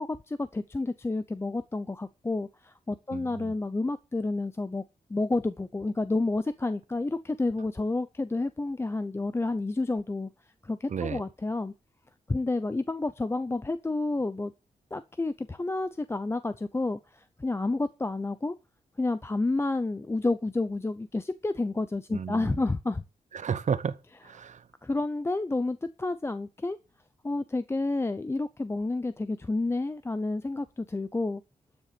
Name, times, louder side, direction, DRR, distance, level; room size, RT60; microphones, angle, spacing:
voice 1, 0.0-4.8 5.1-10.3 10.6-11.7 12.3-14.5 14.9-18.5 19.0-23.0 24.8-26.8 27.2-31.4, left 2 dB, 20° left, 0.6 m, -30 dB
voice 2, 3.1-3.5 10.9-11.2 22.1-22.6 23.3-24.0 24.2-24.6, right 7 dB, 60° right, 0.9 m, -32 dB
12.5 x 6.7 x 6.8 m
wide cardioid pair, 115°, 14 cm